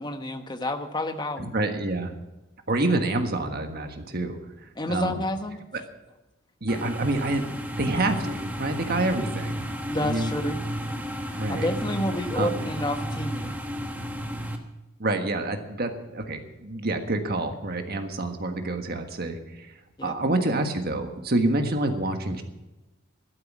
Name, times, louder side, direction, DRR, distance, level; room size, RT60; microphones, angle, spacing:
voice 1, 0.0-1.6 4.8-5.6 9.9-10.6 11.5-13.6 20.0-20.1, left 1 dB, 20° left, 7 dB, 1.0 m, -29 dB
voice 2, 1.4-2.1 2.7-5.2 5.7-5.8 6.6-7.4 7.8-9.6 10.0-10.3 11.3-11.7 12.3-12.5 15.0-19.7 20.0-22.4, right 2 dB, 50° right, 5 dB, 1.5 m, -27 dB
sound 1, 6.7-14.6, equal, 10° right, 1.2 m, -32 dB
12.5 x 12.5 x 6.2 m, 1.0 s
head